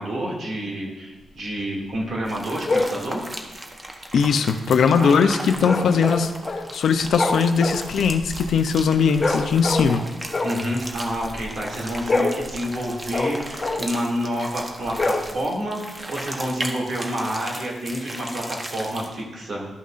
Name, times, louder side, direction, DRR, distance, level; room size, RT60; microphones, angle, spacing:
voice 1, 0.0-3.2 4.9-5.8 10.4-19.7, equal, 60° right, -3 dB, 2.3 m, -29 dB
sound 1, 2.3-19.2, right 1 dB, 25° right, 1.0 m, -37 dB
sound 2, 2.6-3.0 5.6-6.7 7.0-10.0 10.3-11.5 11.9-14.0 14.9-15.7, left 2 dB, 30° left, 0.9 m, -26 dB
voice 2, 4.1-10.0, left 6 dB, 75° left, 9 dB, 0.5 m, -20 dB
12.5 x 5.5 x 2.5 m, 1.1 s
cardioid pair, 80°, 0 cm